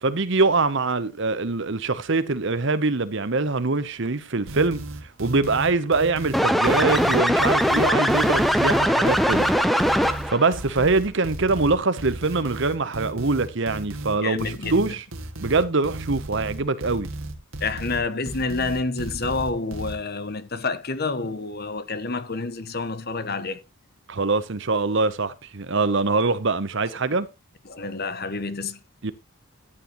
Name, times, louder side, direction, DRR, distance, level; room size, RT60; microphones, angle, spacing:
voice 1, 0.0-9.5 9.9-15.0 15.4-17.1 24.1-27.3 29.0-29.1, right 3 dB, 55° right, 0.9 m, -24 dB
sound 1, 4.5-20.0, right 1 dB, 75° right, 2.1 m, -35 dB
sound 2, 6.3-10.5, equal, ahead, 0.7 m, -20 dB
voice 2, 14.2-14.7 17.6-23.6 27.7-28.8, left 3 dB, 45° left, 1.1 m, -28 dB
13.5 x 9.4 x 3.1 m
head